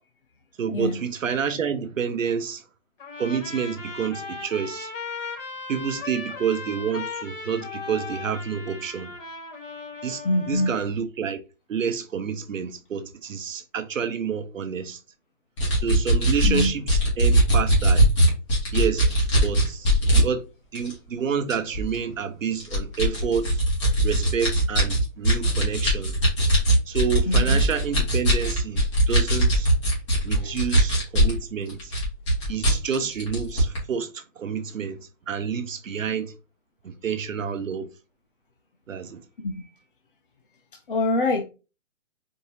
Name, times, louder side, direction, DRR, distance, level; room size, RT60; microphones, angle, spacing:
voice 1, 0.6-2.6 3.2-4.9 5.7-9.1 10.0-11.4 11.7-15.0 15.8-18.1 18.7-20.4 20.7-23.6 24.0-26.2 26.9-29.7 30.2-31.9 32.5-35.0 35.3-36.3 36.8-37.9 38.9-39.2, right 7 dB, 70° right, 0.9 m, -29 dB
Trumpet, 3.0-10.9, left 4 dB, 65° left, 2.2 m, -37 dB
voice 2, 10.2-10.7 16.4-16.7 27.3-27.6 30.3-30.6 39.4-39.7 40.9-41.4, left 2 dB, 40° left, 0.6 m, -24 dB
sound 1, 15.6-20.2 20.7-20.9 21.5-22.0 22.6-31.4 31.7-33.8, right 1 dB, 20° left, 1.5 m, -20 dB
4.5 x 2.7 x 3.1 m
hypercardioid pair, 165°, 40 cm